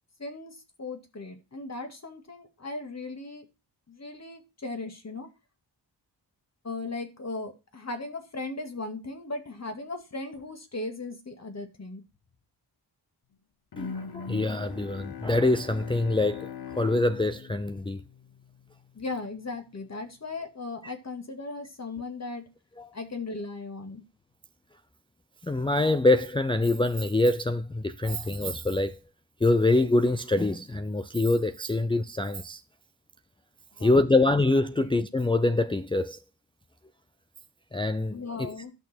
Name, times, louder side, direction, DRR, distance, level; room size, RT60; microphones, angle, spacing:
voice 1, 0.2-3.5 3.9-5.3 6.6-12.0 18.9-22.4 22.9-24.0 33.8-34.1 34.8-34.9 38.1-38.7, left 3 dB, 40° left, 2.2 m, -37 dB
Bowed string instrument, 13.7-18.8, left 7 dB, 60° left, 1.0 m, -41 dB
voice 2, 13.8-18.0 20.8-20.9 22.8-22.9 25.4-29.0 29.4-32.6 33.8-36.2 37.7-38.5, left 2 dB, 10° left, 0.5 m, -25 dB
11.5 x 6.5 x 4.4 m
wide cardioid pair, 110°, 42 cm